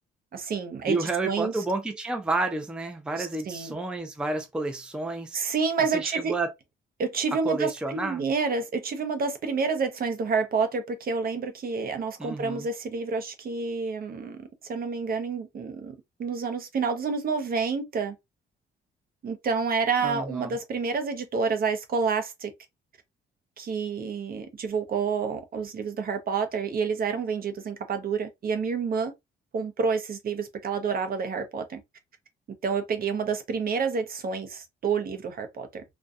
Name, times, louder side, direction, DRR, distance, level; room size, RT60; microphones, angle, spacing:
voice 1, 0.3-1.6 3.2-3.8 5.3-6.3 7.0-18.1 19.2-22.5 23.6-29.1 29.5-31.8 32.6-35.8, right 5 dB, 50° right, 0.6 m, -29 dB
voice 2, 0.9-5.4 5.9-6.5 7.4-8.2 12.2-12.7 20.0-20.6, right 2 dB, 5° right, 0.5 m, -30 dB
2.5 x 2.2 x 2.4 m
cardioid pair, 90°, 20 cm